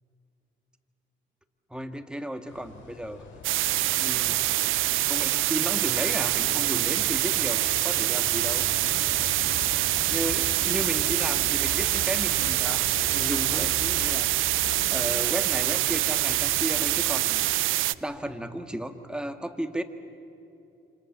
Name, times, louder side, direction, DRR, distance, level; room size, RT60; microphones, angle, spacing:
voice 1, 1.7-3.2 4.0-4.4 5.1-8.7 10.1-14.3 14.9-17.5 18.0-19.8, right 1 dB, 5° right, 7 dB, 1.9 m, -34 dB
sound 1, 2.5-17.5, left 4 dB, 75° left, 4.4 m, -41 dB
sound 2, 3.4-17.9, right 16 dB, 85° right, 0.6 m, -25 dB
28.0 x 26.5 x 7.5 m, 2.8 s
cardioid pair, 90°, 20 cm